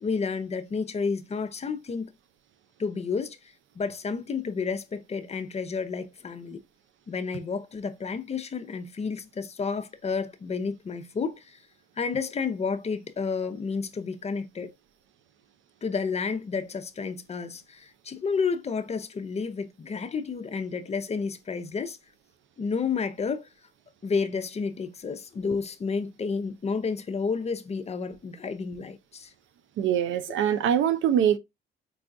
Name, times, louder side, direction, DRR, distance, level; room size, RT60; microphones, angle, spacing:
voice 1, 0.0-2.1 2.8-3.4 3.8-6.6 7.1-11.6 12.0-14.7 15.8-22.0 22.6-23.5 24.0-29.3, left 5 dB, 35° left, 0.5 m, -31 dB
voice 2, 29.8-31.4, right 9 dB, 75° right, 0.5 m, -23 dB
4.6 x 2.3 x 2.5 m
cardioid pair, 90°, 20 cm